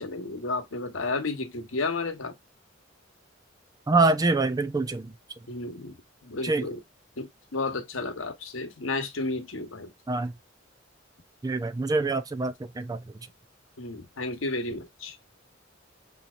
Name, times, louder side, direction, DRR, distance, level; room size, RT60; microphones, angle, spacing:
voice 1, 0.0-2.4 5.5-5.9 6.2-6.8 7.2-9.9 13.8-15.2, left 3 dB, 80° left, 1.1 m, -32 dB
voice 2, 3.9-5.1 6.4-6.7 10.1-10.3 11.4-13.0, right 3 dB, 20° right, 0.4 m, -25 dB
5.3 x 2.9 x 2.4 m
head